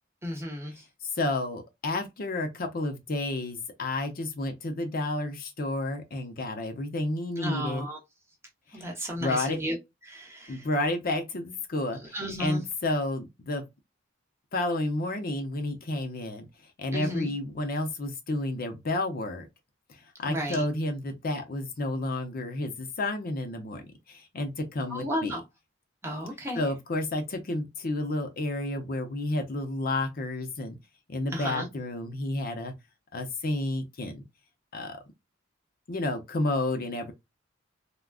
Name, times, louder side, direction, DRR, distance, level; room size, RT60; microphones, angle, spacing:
voice 1, 0.2-0.7 7.4-8.0 8.7-9.8 10.1-10.7 12.1-12.6 16.9-17.3 20.3-20.6 24.9-25.4 26.0-26.6 31.3-31.7, equal, 15° right, 0.8 m, -33 dB
voice 2, 1.1-7.9 8.7-8.9 9.2-9.6 10.5-13.6 14.5-16.5 16.8-19.5 19.9-25.4 26.6-30.8 31.1-32.7 33.1-34.2 34.7-35.0 35.9-37.1, left 2 dB, 50° left, 0.6 m, -31 dB
3.5 x 2.2 x 2.3 m
head